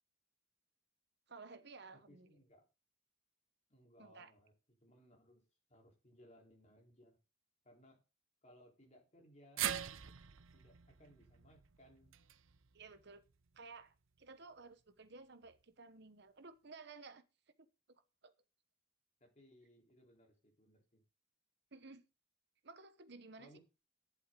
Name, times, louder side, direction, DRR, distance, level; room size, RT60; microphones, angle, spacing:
voice 1, 1.3-2.4 4.0-4.3 12.7-13.2 13.5-17.2 17.9-18.3 21.7-22.0 22.6-23.6, right 4 dB, 55° right, 1.0 m, -55 dB
voice 2, 1.9-2.7 3.7-4.5 4.8-7.2 7.6-8.0 8.4-9.7 10.5-12.1 19.2-21.0 23.4-23.6, equal, 35° left, 3.8 m, -64 dB
sound 1, 9.6-13.8 14.2-14.3 15.4-15.5, right 10 dB, 80° right, 0.7 m, -44 dB
11.5 x 11.0 x 3.8 m
head